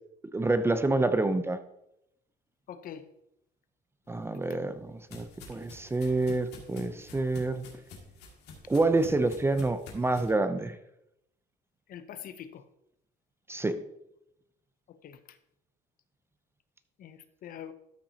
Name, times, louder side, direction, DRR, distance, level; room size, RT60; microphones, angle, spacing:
voice 1, 0.3-1.6 4.1-7.7 8.7-10.8 13.5-13.8, right 2 dB, 15° right, 11 dB, 0.5 m, -27 dB
voice 2, 2.7-3.0 11.9-12.6 14.9-15.2 17.0-17.7, left 9 dB, 55° left, 11 dB, 0.7 m, -44 dB
sound 1, 4.2-10.3, left 3 dB, 80° left, 2.1 m, -48 dB
13.0 x 5.8 x 2.8 m, 0.82 s
cardioid pair, 110°, 17 cm